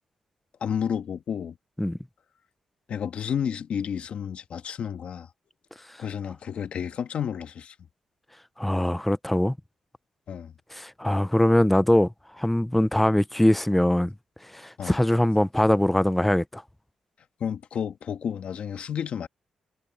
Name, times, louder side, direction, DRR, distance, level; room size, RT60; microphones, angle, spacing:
voice 1, 0.6-1.5 2.9-5.3 6.0-7.7 10.3-10.5 14.8-15.0 17.4-19.3, left 8 dB, 60° left, 1.5 m, -31 dB
voice 2, 8.6-9.6 10.7-12.1 12.4-14.1 14.5-16.6, left 1 dB, 5° left, 0.6 m, -22 dB
cardioid pair, 120°, 2 cm